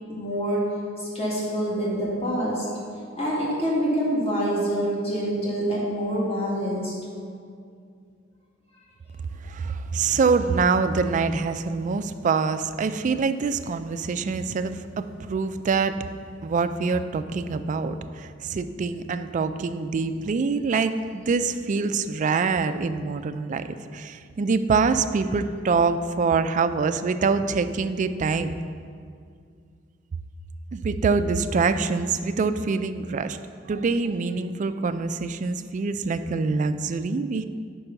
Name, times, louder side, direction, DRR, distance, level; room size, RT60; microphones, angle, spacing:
voice 1, 0.1-0.6 1.0-2.7 3.2-7.0, equal, 30° left, -6 dB, 1.9 m, -26 dB
voice 2, 9.4-16.0 16.4-28.6 30.7-33.4 33.7-37.4, right 4 dB, 40° right, 10 dB, 0.3 m, -25 dB
6.7 x 5.3 x 5.8 m, 2.2 s
head